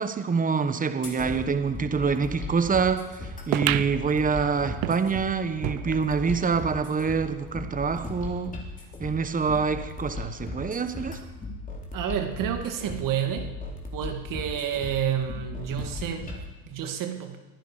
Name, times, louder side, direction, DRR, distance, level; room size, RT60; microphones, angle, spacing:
voice 1, 0.0-8.5 9.0-11.2, right 5 dB, 20° right, 9 dB, 1.3 m, -26 dB
sound 1, 1.0-16.4, left 3 dB, 20° left, 3.9 m, -37 dB
sound 2, 3.5-6.5 6.9-7.0 7.2-7.3 8.1-8.2, right 18 dB, 65° right, 0.7 m, -32 dB
voice 2, 11.9-13.5 13.9-17.4, right 9 dB, 50° right, 4 dB, 2.2 m, -30 dB
22.0 x 10.0 x 5.1 m, 1.2 s
supercardioid pair, 100°, 40 cm